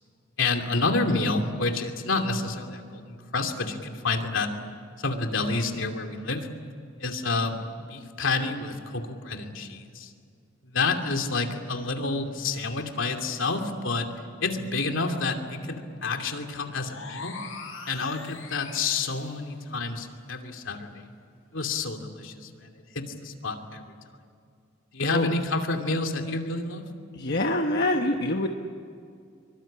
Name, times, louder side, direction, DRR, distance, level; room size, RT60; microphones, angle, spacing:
voice 1, 0.4-4.5 5.0-6.5 7.0-10.1 10.6-14.1 14.4-17.4 17.9-21.1 21.5-23.8 24.9-26.8, left 3 dB, 70° left, 4 dB, 2.8 m, -29 dB
sound 1, 16.7-19.5, left 4 dB, 85° left, 6.8 m, -42 dB
voice 2, 27.1-28.5, left 1 dB, 50° left, 3 dB, 1.3 m, -25 dB
25.0 x 24.0 x 8.8 m, 2.4 s
head